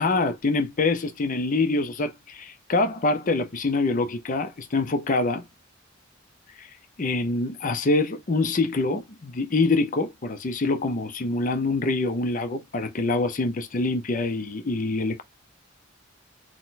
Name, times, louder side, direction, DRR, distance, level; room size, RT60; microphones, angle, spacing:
voice 1, 0.0-5.4 6.6-6.7 7.0-15.2, left 3 dB, 45° left, 0.6 m, -25 dB
4.1 x 2.2 x 4.1 m
head